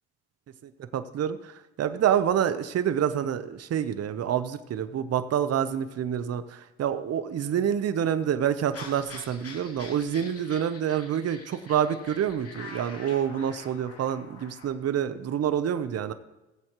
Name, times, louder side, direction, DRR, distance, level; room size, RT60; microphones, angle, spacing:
voice 1, 0.6-16.1, right 9 dB, 55° right, 11 dB, 0.8 m, -27 dB
sound 1, 8.7-14.7, left 3 dB, 50° left, 2.5 m, -45 dB
18.0 x 7.9 x 3.0 m, 1.0 s
cardioid pair, 90°, 30 cm